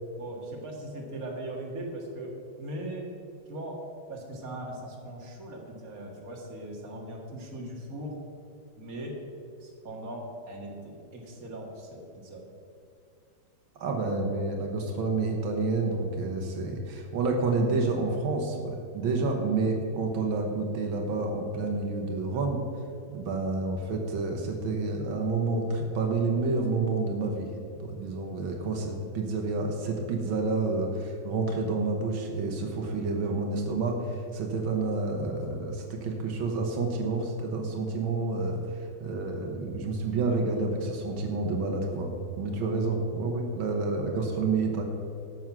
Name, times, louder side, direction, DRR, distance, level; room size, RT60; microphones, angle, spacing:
voice 1, 0.2-3.1 3.5-3.8 4.1-8.2 8.8-9.2 9.6-12.5, right 1 dB, 45° right, -1 dB, 2.3 m, -39 dB
voice 2, 13.8-22.6 23.1-27.5 27.8-44.8, right 3 dB, 85° right, 2 dB, 2.0 m, -29 dB
12.5 x 7.3 x 6.0 m, 2.5 s
omnidirectional pair, 2.1 m